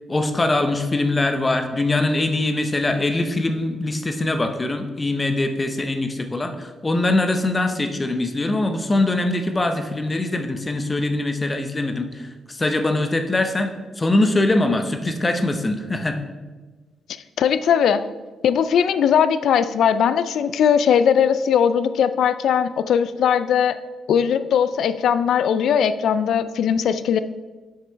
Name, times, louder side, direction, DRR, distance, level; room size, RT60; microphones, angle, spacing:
voice 1, 0.1-16.2, left 2 dB, 20° left, 7 dB, 0.7 m, -22 dB
voice 2, 17.4-18.0 18.4-23.8 24.1-27.2, left 8 dB, 75° left, 13 dB, 0.4 m, -19 dB
7.4 x 6.0 x 4.6 m, 1.3 s
cardioid pair, 125°, 0 cm